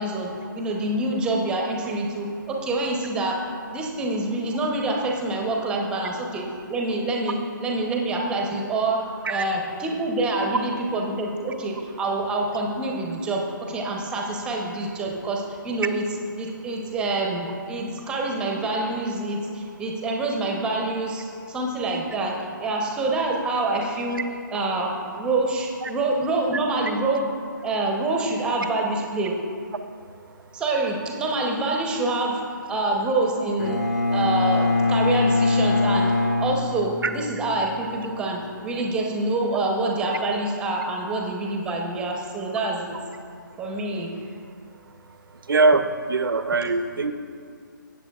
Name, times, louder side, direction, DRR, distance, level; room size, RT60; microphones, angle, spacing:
voice 1, 0.0-3.4 3.7-16.0 16.4-24.2 24.5-27.3 27.6-29.4 30.5-33.8 34.1-43.0 43.6-44.1, right 2 dB, 10° right, 0 dB, 0.7 m, -26 dB
Bowed string instrument, 33.6-37.4, left 3 dB, 50° left, 1.0 m, -22 dB
voice 2, 45.5-45.8 46.1-47.1, right 3 dB, 85° right, 10 dB, 0.6 m, -21 dB
15.0 x 7.8 x 2.3 m, 2.3 s
hypercardioid pair, 155°, 11 cm